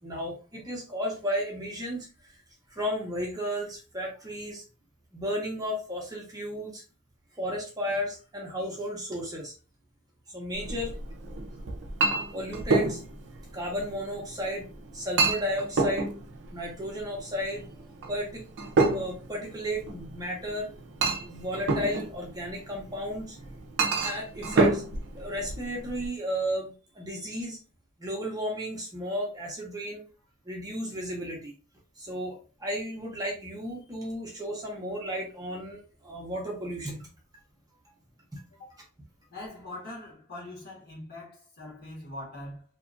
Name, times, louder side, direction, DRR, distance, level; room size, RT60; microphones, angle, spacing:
voice 1, 0.0-2.3 2.7-4.6 5.1-6.8 7.4-9.5 10.3-11.0 12.3-13.0 13.5-14.7 14.9-16.1 16.5-17.7 18.1-18.4 18.9-20.7 21.2-23.4 24.0-24.8 25.1-27.6 28.0-30.0 30.5-31.5 32.0-37.1 38.3-38.4, equal, 15° right, 0.7 m, -33 dB
Chink clink, 10.5-26.1, right 3 dB, 55° right, 0.5 m, -30 dB
voice 2, 39.3-42.6, left 1 dB, 45° left, 1.3 m, -42 dB
2.9 x 2.3 x 2.5 m
head